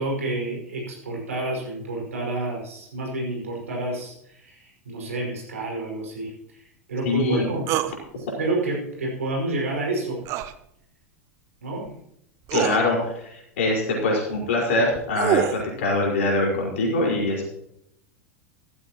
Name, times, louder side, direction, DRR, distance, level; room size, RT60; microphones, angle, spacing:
voice 1, 0.0-6.6 6.9-7.7 8.1-10.2 11.6-11.9, right 2 dB, 70° right, -1 dB, 5.9 m, -29 dB
voice 2, 7.0-7.5 12.5-17.5, left 2 dB, 60° left, -2 dB, 5.1 m, -23 dB
sound 1, 7.7-7.9 10.2-10.5 11.9-12.0 12.5-12.8 14.8-15.6, right 11 dB, 40° right, 0.9 m, -25 dB
15.0 x 14.0 x 3.1 m, 0.76 s
figure-of-eight pair, 90°, 8 cm